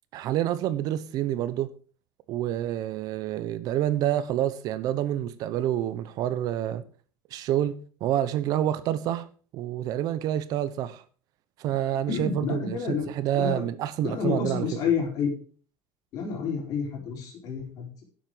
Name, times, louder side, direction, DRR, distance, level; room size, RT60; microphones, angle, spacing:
voice 1, 0.1-1.7 2.3-6.8 7.3-9.3 9.5-11.0 11.6-14.7, right 12 dB, 45° right, 0.8 m, -28 dB
voice 2, 12.1-13.7 14.0-15.3 16.1-18.1, left 6 dB, 45° left, 4.1 m, -29 dB
11.0 x 7.6 x 5.0 m
cardioid pair, 165°, 9 cm